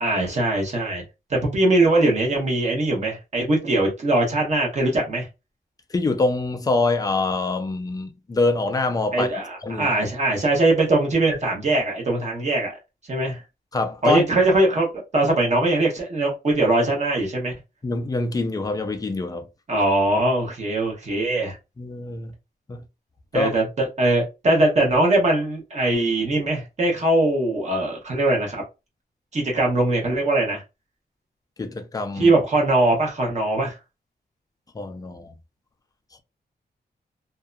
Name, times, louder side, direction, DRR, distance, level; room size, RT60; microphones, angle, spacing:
voice 1, 0.0-1.0 1.3-5.3 9.1-12.7 13.1-13.4 14.0-17.5 19.7-21.6 23.3-28.6 29.3-30.6 32.2-33.8, right 2 dB, 40° right, 0.9 m, -21 dB
voice 2, 5.9-9.3 9.6-9.9 13.7-14.2 17.8-19.5 21.8-22.3 22.7-22.8 23.3-23.5 31.6-32.3 34.7-35.4, left 3 dB, 20° left, 0.3 m, -25 dB
2.6 x 2.2 x 2.4 m
wide cardioid pair, 170°, 17 cm